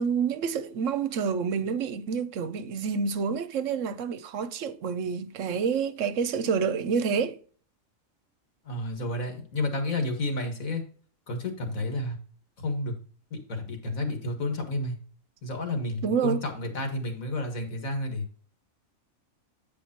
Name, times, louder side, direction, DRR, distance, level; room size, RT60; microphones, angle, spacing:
voice 1, 0.0-7.4 16.0-16.4, right 6 dB, 70° right, 1.0 m, -28 dB
voice 2, 8.7-10.8 11.3-12.2 12.6-12.9 13.3-15.0 15.4-18.3, left 2 dB, 90° left, 2.2 m, -31 dB
8.7 x 5.2 x 4.3 m
omnidirectional pair, 1.4 m